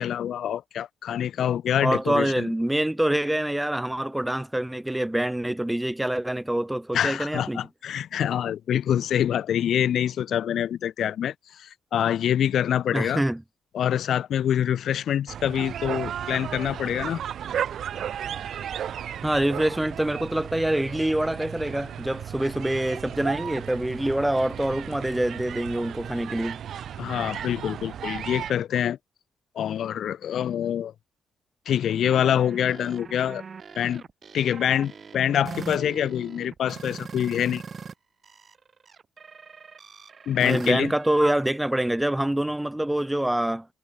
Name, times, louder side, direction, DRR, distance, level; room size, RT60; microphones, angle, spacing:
voice 1, 0.0-2.5 6.9-13.2 13.7-17.2 27.0-29.0 29.5-30.9 31.6-33.4 33.8-34.0 34.3-37.6 40.3-40.9, left 10 dB, 65° left, 1.6 m, -25 dB
voice 2, 1.8-7.6 12.9-13.4 19.2-26.6 40.4-43.7, right 1 dB, 5° right, 1.0 m, -25 dB
sound 1, 15.3-28.5, right 9 dB, 65° right, 5.9 m, -35 dB
sound 2, 31.8-37.9 38.2-41.5, right 5 dB, 40° right, 5.1 m, -42 dB
cardioid pair, 90°, 0 cm